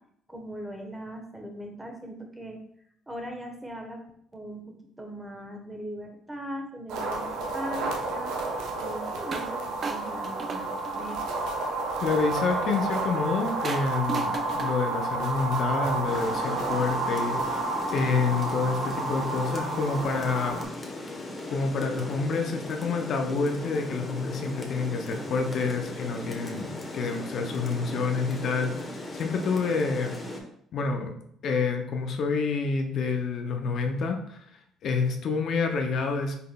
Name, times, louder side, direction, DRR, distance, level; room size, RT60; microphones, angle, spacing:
voice 1, 0.3-2.6 3.1-8.4 8.8-11.2, equal, 15° right, 2 dB, 1.1 m, -40 dB
sound 1, 6.9-20.6, right 2 dB, 75° right, 0.8 m, -31 dB
sound 2, 9.3-9.6 9.8-11.4 13.6-16.4, right 4 dB, 45° right, 0.4 m, -37 dB
voice 2, 12.0-20.6 21.5-30.2 30.7-31.1 31.4-34.4 34.8-36.4, left 4 dB, 60° left, 4 dB, 0.6 m, -28 dB
Rain, 16.1-30.4, left 2 dB, 30° left, 1.1 m, -38 dB
5.5 x 3.8 x 2.3 m, 0.69 s
supercardioid pair, 65°, 0 cm